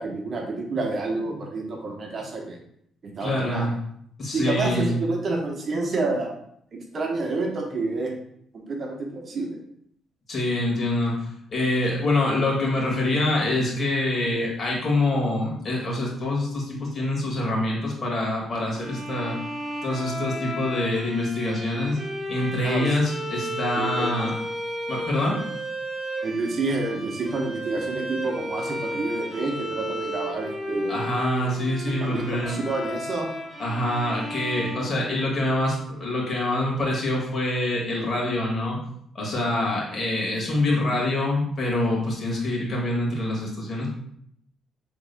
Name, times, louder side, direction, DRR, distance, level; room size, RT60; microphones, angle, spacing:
voice 1, 0.0-2.6 3.0-3.7 4.3-6.4 6.7-8.1 8.5-9.6 22.6-23.0 23.7-24.3 26.2-31.1 31.8-33.3 34.6-34.7, right 3 dB, 45° right, 1 dB, 1.0 m, -29 dB
voice 2, 3.2-3.7 4.2-5.0 10.3-19.4 19.8-22.0 22.3-24.3 24.9-25.4 30.9-32.6 33.6-38.8 39.2-43.9, left 1 dB, 40° left, -2 dB, 1.8 m, -25 dB
sound 1, 18.7-35.6, right 1 dB, 20° right, 1.3 m, -33 dB
6.7 x 3.6 x 2.2 m, 0.70 s
cardioid pair, 90°, 0 cm